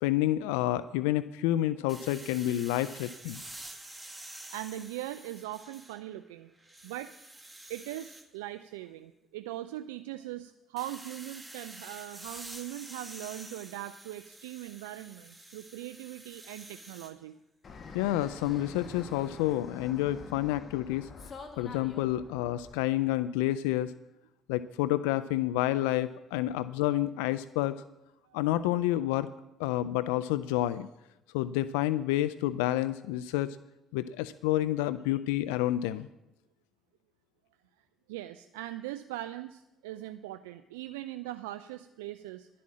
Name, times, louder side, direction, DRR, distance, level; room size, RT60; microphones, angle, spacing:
voice 1, 0.0-3.4 17.9-21.1 21.6-23.9 24.5-27.8 28.3-29.3 29.6-30.9 31.3-33.6 33.9-36.1, left 14 dB, 85° left, 15 dB, 0.3 m, -29 dB
sound 1, 1.9-6.2 6.6-8.2 10.8-17.1, right 1 dB, 10° right, 2.0 m, -48 dB
voice 2, 4.5-6.5 6.8-7.1 7.7-17.4 28.3-28.4 38.1-42.5, right 14 dB, 90° right, 10 dB, 0.4 m, -40 dB
Fixed-wing aircraft airplane, 17.6-22.8, left 4 dB, 50° left, 1.9 m, -46 dB
12.0 x 8.4 x 7.5 m, 0.90 s
hypercardioid pair, 60°, 0 cm